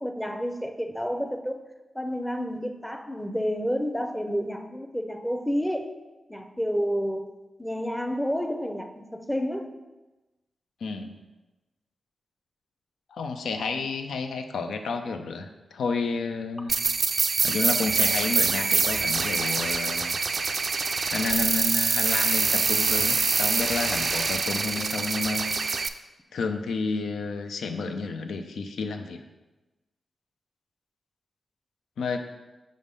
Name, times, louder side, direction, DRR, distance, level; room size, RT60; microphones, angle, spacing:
voice 1, 0.0-1.6 1.9-6.0 6.3-7.3 7.6-9.7, equal, 5° left, 6 dB, 0.6 m, -30 dB
voice 2, 10.8-11.1 13.1-16.8 17.4-20.2 21.1-25.7 26.3-29.2 32.0-32.2, left 4 dB, 85° left, 6 dB, 0.5 m, -31 dB
sound 1, 16.7-25.9, right 4 dB, 55° right, 0.3 m, -25 dB
5.1 x 3.5 x 5.4 m, 1.1 s
cardioid pair, 70°, 0 cm